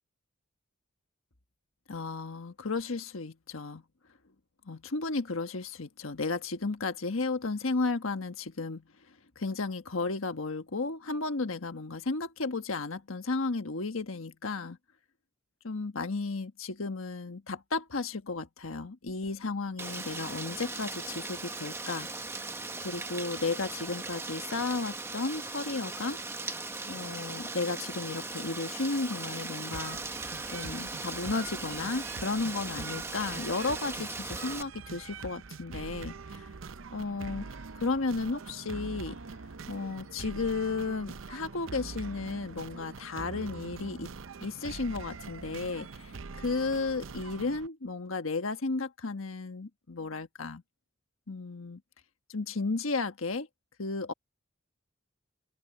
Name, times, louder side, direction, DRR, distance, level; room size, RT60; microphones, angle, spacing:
voice 1, 1.9-3.8 4.7-8.8 9.4-14.8 15.6-22.1 22.8-26.2 26.9-30.0 30.5-36.5 36.9-39.2 39.7-44.1 44.4-50.6 51.3-51.8 52.3-53.5 53.8-54.1, left 3 dB, 90° left, 1.3 m, -34 dB
Rain, 19.8-34.6, right 3 dB, 15° right, 1.1 m, -39 dB
sound 1, 29.7-47.7, right 4 dB, 75° right, 0.7 m, -44 dB
open air
head